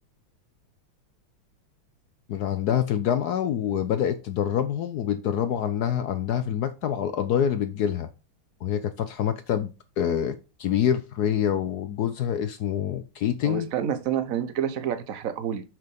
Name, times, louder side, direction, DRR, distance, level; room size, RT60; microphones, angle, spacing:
voice 1, 2.3-8.1 8.6-13.7, left 9 dB, 70° left, 10 dB, 0.9 m, -26 dB
voice 2, 13.4-15.6, right 9 dB, 55° right, 11 dB, 1.0 m, -28 dB
6.2 x 5.9 x 5.2 m, 0.31 s
omnidirectional pair, 2.3 m